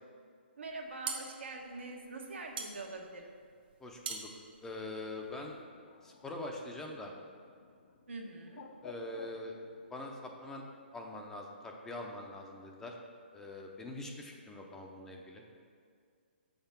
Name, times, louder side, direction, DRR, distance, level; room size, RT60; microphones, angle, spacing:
voice 1, 0.6-3.3 8.1-8.6, right 3 dB, 80° right, 1 dB, 1.3 m, -44 dB
sound 1, 0.7-5.6, right 5 dB, 50° right, 1.0 m, -44 dB
voice 2, 3.8-4.3 4.6-5.6 6.0-7.1 8.8-9.6 9.9-10.6 10.9-13.0 13.3-15.4, left 2 dB, 5° left, 1 dB, 0.6 m, -43 dB
Bird, 5.2-10.7, left 5 dB, 50° left, 0.7 m, -55 dB
6.3 x 5.9 x 5.7 m, 2.1 s
hypercardioid pair, 155°, 6 cm